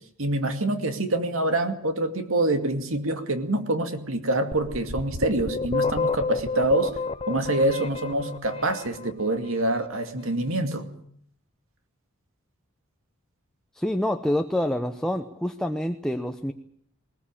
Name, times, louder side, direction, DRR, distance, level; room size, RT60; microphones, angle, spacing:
voice 1, 0.2-6.9 7.3-10.9, right 1 dB, 70° right, 2.4 m, -26 dB
sound 1, 4.5-9.4, left 4 dB, 25° left, 0.9 m, -30 dB
voice 2, 13.7-16.5, left 1 dB, 5° left, 0.9 m, -27 dB
20.5 x 19.5 x 8.8 m
head